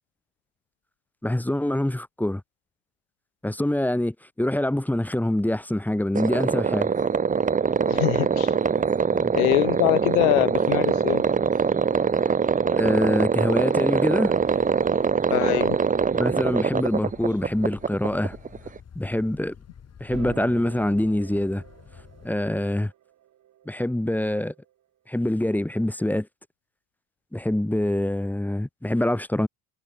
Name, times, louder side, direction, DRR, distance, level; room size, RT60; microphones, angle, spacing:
voice 1, 1.2-2.4 3.4-6.9 9.1-9.3 12.7-14.3 16.1-18.4 18.9-19.5 20.0-21.6 22.2-22.9 23.7-24.5 25.1-26.3 27.3-29.5, left 1 dB, 5° left, 1.1 m, -25 dB
sound 1, 6.2-18.8, right 5 dB, 20° right, 0.8 m, -23 dB
voice 2, 7.9-8.6 9.3-11.2 15.3-15.8, left 37 dB, 75° left, 0.7 m, -23 dB
sound 2, 14.2-22.4, left 7 dB, 40° left, 7.9 m, -48 dB
sound 3, 20.1-23.8 24.5-24.6, right 12 dB, 50° right, 1.5 m, -44 dB
hypercardioid pair, 75°, 39 cm